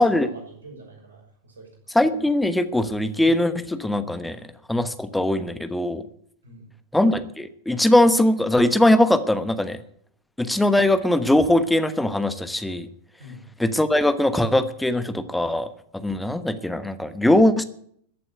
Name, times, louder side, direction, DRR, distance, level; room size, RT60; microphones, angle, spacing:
voice 1, 0.0-1.7 6.4-6.7 13.2-13.5, right 1 dB, 70° right, 1 dB, 6.2 m, -44 dB
voice 2, 1.9-4.4 4.7-6.0 6.9-9.8 10.4-12.9 13.6-15.7 15.9-17.6, left 1 dB, 5° left, 11 dB, 1.2 m, -20 dB
14.5 x 8.4 x 9.1 m, 0.66 s
figure-of-eight pair, 90°, 0 cm